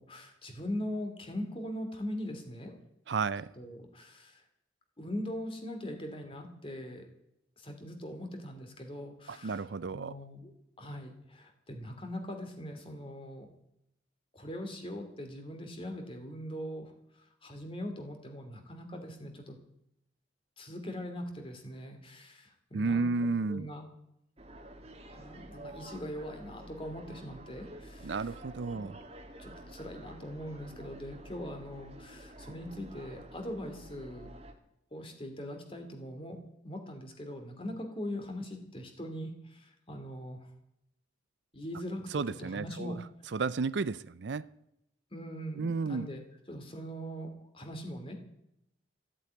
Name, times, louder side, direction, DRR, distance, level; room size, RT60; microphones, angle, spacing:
voice 1, 0.0-2.7 3.6-4.4 5.0-7.1 7.6-10.5 10.8-13.5 14.3-16.9 17.4-19.6 20.6-23.1 23.5-23.8 25.1-28.3 28.7-28.9 29.4-34.3 34.9-36.4 36.6-40.5 41.5-43.0 45.1-46.2 46.5-48.1, equal, 30° left, 2.7 m, -41 dB
voice 2, 3.1-3.5 9.3-10.2 22.7-23.7 28.0-29.0 42.1-43.0 43.3-44.4 45.6-46.1, right 4 dB, 70° right, 0.5 m, -32 dB
sound 1, 24.4-34.5, right 1 dB, 35° right, 1.9 m, -49 dB
14.0 x 8.5 x 9.3 m
head